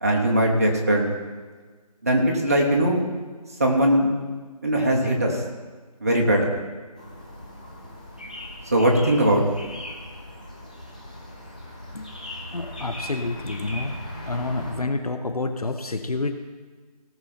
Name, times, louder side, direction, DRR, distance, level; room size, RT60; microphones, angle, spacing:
voice 1, 0.0-1.1 2.0-3.0 3.6-4.1 4.6-5.4 6.0-6.6 8.7-9.4, right 1 dB, 25° right, -1 dB, 1.2 m, -20 dB
sound 1, 7.0-14.8, left 1 dB, 10° left, 0.7 m, -39 dB
voice 2, 12.5-14.0 14.3-16.3, left 3 dB, 70° left, 8 dB, 1.2 m, -28 dB
17.5 x 6.3 x 4.4 m, 1.4 s
figure-of-eight pair, 170°, 20 cm